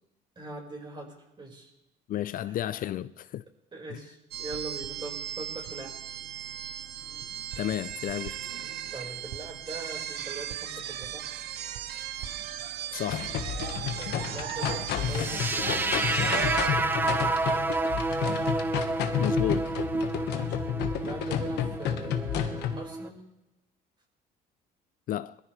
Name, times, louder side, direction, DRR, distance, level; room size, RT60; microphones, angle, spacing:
voice 1, 0.3-1.7 2.4-2.6 3.7-6.0 8.9-11.3 14.0-16.4 20.2-23.2, right 3 dB, 30° right, 5.0 m, -42 dB
voice 2, 2.1-3.4 3.9-4.0 7.6-8.4 12.9-13.4 19.2-19.7 25.1-25.4, left 12 dB, 55° left, 0.4 m, -32 dB
sound 1, 4.3-16.7, right 10 dB, 75° right, 0.9 m, -37 dB
sound 2, 13.1-22.8, left 9 dB, 85° left, 1.4 m, -31 dB
sound 3, 15.1-23.1, right 2 dB, 10° right, 0.7 m, -30 dB
22.0 x 14.5 x 3.3 m
cardioid pair, 110°, 17 cm